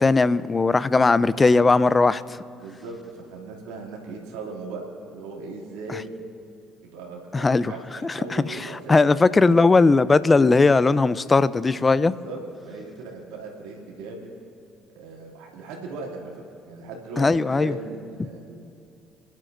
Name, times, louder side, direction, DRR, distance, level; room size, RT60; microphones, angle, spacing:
voice 1, 0.0-2.4 7.3-7.7 8.0-12.1 17.2-17.8, left 3 dB, 30° left, 16 dB, 0.6 m, -19 dB
voice 2, 2.6-6.1 6.8-9.0 12.2-14.3 14.9-16.3 16.6-18.6, right 3 dB, 75° right, -2 dB, 2.8 m, -38 dB
28.5 x 12.0 x 2.7 m, 2.5 s
hypercardioid pair, 55°, 0 cm